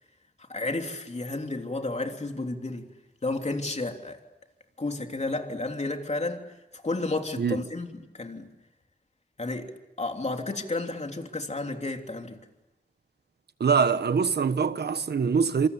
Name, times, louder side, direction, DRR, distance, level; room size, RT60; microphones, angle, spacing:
voice 1, 0.5-2.9 3.2-4.2 4.8-6.5 6.7-8.5 9.4-12.4, left 2 dB, 45° left, 3.3 m, -32 dB
voice 2, 13.6-15.7, right 6 dB, 85° right, 1.2 m, -23 dB
27.0 x 26.0 x 8.4 m
wide cardioid pair, 75°, 17 cm